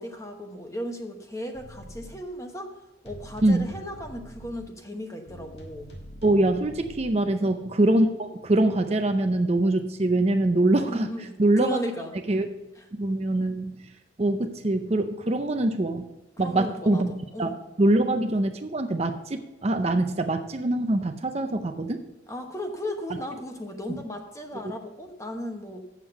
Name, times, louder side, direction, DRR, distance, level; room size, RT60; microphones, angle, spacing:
voice 1, 0.0-2.7 3.0-5.9 7.4-7.5 10.9-12.1 12.8-12.9 16.4-17.6 22.3-25.8, equal, 15° left, 4 dB, 1.0 m, -36 dB
sound 1, 1.5-2.2 3.0-4.7 5.3-7.1, equal, 70° left, 1.7 m, -44 dB
voice 2, 6.2-11.1 11.4-11.8 12.3-12.5 12.9-13.8 14.2-16.1 16.4-17.5 17.8-22.0, right 2 dB, 35° right, 7 dB, 0.5 m, -24 dB
8.3 x 7.2 x 5.7 m, 1.0 s
head